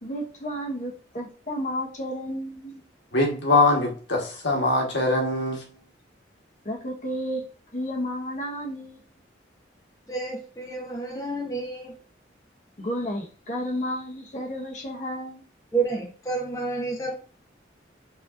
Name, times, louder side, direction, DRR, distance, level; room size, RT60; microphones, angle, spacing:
voice 1, 0.0-2.8 6.6-7.4 7.7-9.0 12.8-15.4, equal, 40° left, 1.2 m, -32 dB
voice 2, 3.1-5.6, left 2 dB, 75° left, 1.3 m, -22 dB
voice 3, 10.1-12.0 15.7-17.1, right 3 dB, 15° left, 0.8 m, -29 dB
6.2 x 2.9 x 2.5 m
head